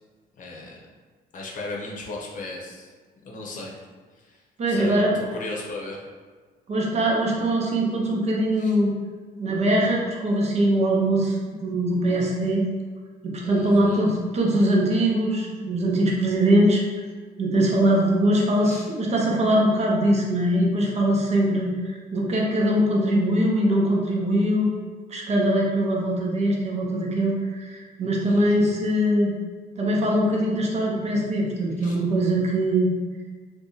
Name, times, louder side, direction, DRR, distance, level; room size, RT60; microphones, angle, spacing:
voice 1, 0.4-0.8 1.3-2.9 3.2-3.8 4.2-4.4 4.7-5.1 5.3-6.0 8.5-8.8 13.4-14.0 18.6-18.9 28.2-28.8 31.8-32.0, left 2 dB, 50° left, -2 dB, 0.8 m, -36 dB
voice 2, 4.6-5.1 6.7-8.9 9.4-12.6 13.2-16.8 17.4-24.7 25.1-29.3 29.8-32.9, right 1 dB, 40° right, -2 dB, 0.7 m, -22 dB
2.8 x 2.5 x 3.8 m, 1.5 s
cardioid pair, 110°, 17 cm